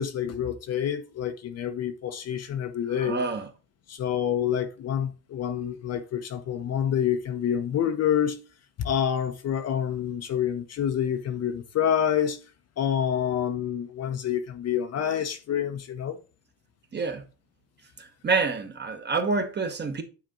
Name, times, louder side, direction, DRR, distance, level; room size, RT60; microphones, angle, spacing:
voice 1, 0.0-3.2 3.9-8.4 8.8-12.4 12.8-16.2, left 9 dB, 40° left, 0.7 m, -27 dB
voice 2, 3.0-3.5 16.9-17.2 18.2-20.0, right 4 dB, 25° right, 1.1 m, -27 dB
9.1 x 3.7 x 3.8 m
supercardioid pair, 115°, 42 cm